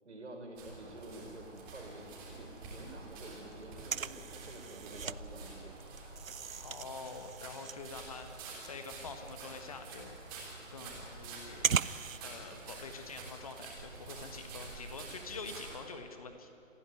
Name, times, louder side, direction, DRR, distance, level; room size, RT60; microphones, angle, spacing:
voice 1, 0.0-5.8 12.5-12.7, right 2 dB, 60° right, 2 dB, 4.5 m, -49 dB
sound 1, 0.6-15.8, right 3 dB, 15° right, 3.5 m, -48 dB
sound 2, 1.4-2.3 2.6-2.7 2.9-5.2 5.5-12.2, right 7 dB, 80° right, 0.6 m, -38 dB
voice 2, 6.6-10.2 10.7-11.8 12.2-16.5, left 4 dB, 25° left, 7 dB, 1.5 m, -46 dB
28.0 x 10.5 x 9.8 m, 2.6 s
figure-of-eight pair, 150°, 40 cm